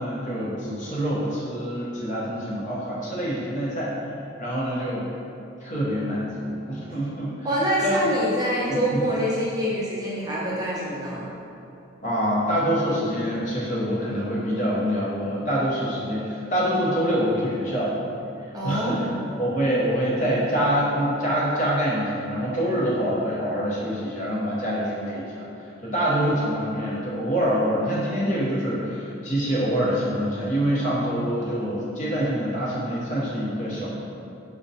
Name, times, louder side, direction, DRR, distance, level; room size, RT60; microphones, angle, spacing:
voice 1, 0.0-3.9 4.4-5.1 5.6-7.5 7.8-8.2 8.7-9.0 12.0-17.9 18.6-19.1 19.4-25.5 25.8-33.9, equal, 40° left, -6 dB, 0.6 m, -25 dB
voice 2, 7.4-11.3 18.5-19.1, right 1 dB, 20° right, -7 dB, 0.5 m, -26 dB
4.9 x 2.1 x 2.6 m, 2.7 s
head